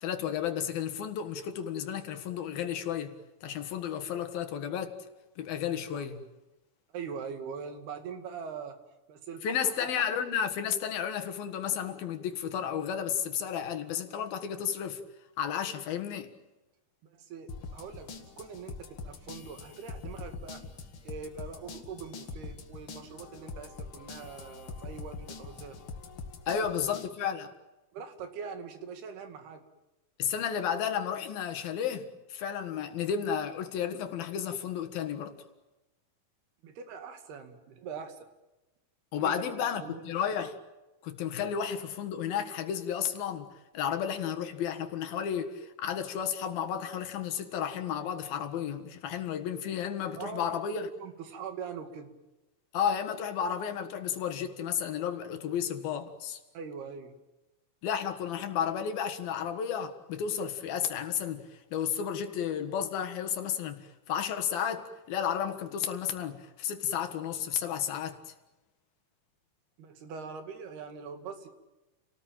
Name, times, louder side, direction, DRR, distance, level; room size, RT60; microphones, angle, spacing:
voice 1, 0.0-5.0 5.4-6.2 9.4-15.0 15.4-16.3 26.5-27.5 30.2-35.4 39.1-40.6 41.0-43.5 43.7-50.9 52.7-56.4 57.8-68.3, left 8 dB, 70° left, 3.4 m, -32 dB
voice 2, 6.9-8.8 9.1-9.9 17.0-20.6 21.0-25.8 26.5-26.8 27.9-29.6 36.6-38.3 39.2-40.0 50.2-52.1 56.5-57.2 69.8-71.5, right 6 dB, 85° right, 4.2 m, -42 dB
sound 1, 17.5-27.1, left 4 dB, 45° left, 2.0 m, -44 dB
30.0 x 19.0 x 8.9 m
omnidirectional pair, 4.4 m